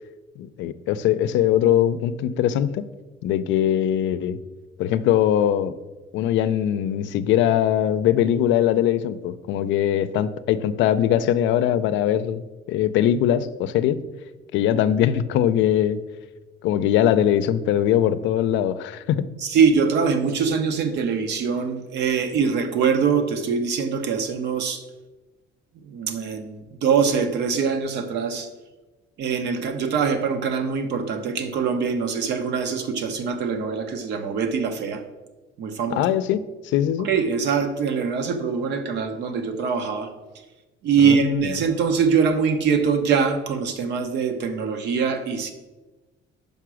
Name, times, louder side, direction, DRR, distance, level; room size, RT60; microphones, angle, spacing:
voice 1, 0.4-2.8 3.2-4.4 4.8-5.7 6.1-14.0 14.5-16.0 16.6-19.3 35.9-37.1 41.0-41.5, left 10 dB, 75° left, 13 dB, 0.5 m, -21 dB
voice 2, 19.4-24.8 25.8-28.5 29.2-35.0 35.6-36.0 37.0-40.1 40.8-45.5, right 6 dB, 65° right, 7 dB, 0.9 m, -23 dB
5.8 x 5.3 x 6.2 m, 1.2 s
cardioid pair, 150°, 19 cm